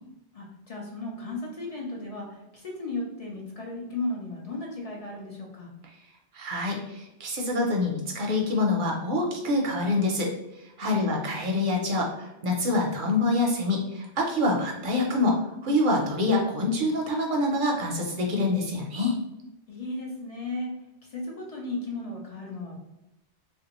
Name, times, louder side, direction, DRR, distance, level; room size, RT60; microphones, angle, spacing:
voice 1, 0.3-5.7 10.8-11.2 19.7-20.7 21.0-22.8, left 2 dB, 45° left, -2 dB, 0.5 m, -35 dB
voice 2, 6.3-10.3 10.6-19.2, left 2 dB, 55° right, 0 dB, 0.6 m, -26 dB
3.3 x 2.5 x 2.9 m, 0.92 s
omnidirectional pair, 1.2 m